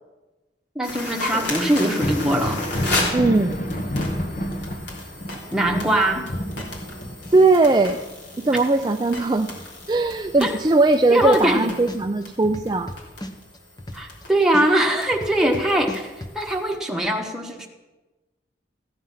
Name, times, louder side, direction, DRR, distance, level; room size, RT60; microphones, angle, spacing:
voice 1, 0.7-2.6 5.5-6.3 10.4-10.5 11.1-11.7 13.9-16.1 16.3-17.7, right 1 dB, 5° right, 0 dB, 1.3 m, -21 dB
sound 1, 0.8-16.8, left 2 dB, 70° left, 3.3 m, -35 dB
Thunder, 1.8-11.2 11.6-12.8 14.3-14.4 15.2-15.4, left 1 dB, 45° left, 1.2 m, -31 dB
voice 2, 3.1-3.6 7.3-8.0 8.4-9.5 9.9-12.9, right 2 dB, 25° right, 6 dB, 0.4 m, -19 dB
sound 2, 11.2-11.6 11.9-14.2 14.5-16.3, left 1 dB, 20° left, 0.9 m, -35 dB
15.0 x 9.1 x 5.6 m, 1.1 s
head